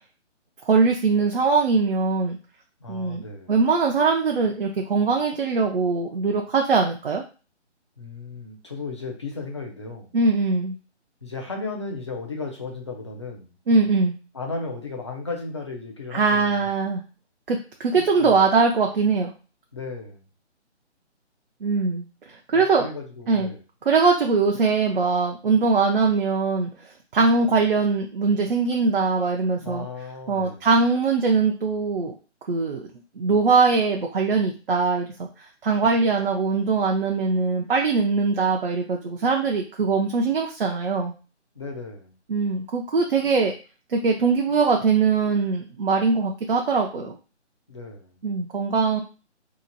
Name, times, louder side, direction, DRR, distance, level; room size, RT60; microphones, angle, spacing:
voice 1, 0.6-2.4 2.9-7.2 10.1-10.7 13.7-14.1 16.1-17.0 17.5-19.3 21.6-22.9 23.3-23.5 23.9-26.7 27.1-29.9 30.3-32.1 32.5-32.8 33.2-35.3 35.6-41.1 42.3-43.5 43.9-47.1 48.2-49.0, right 4 dB, 50° right, 1 dB, 0.6 m, -21 dB
voice 2, 2.8-3.5 8.0-10.1 11.2-13.5 14.3-16.7 18.2-18.4 19.7-20.2 22.5-23.6 29.6-30.7 41.6-42.1 47.7-48.2, left 3 dB, 25° left, 0 dB, 0.4 m, -35 dB
2.9 x 2.5 x 3.8 m, 0.34 s
hypercardioid pair, 160°, 35 cm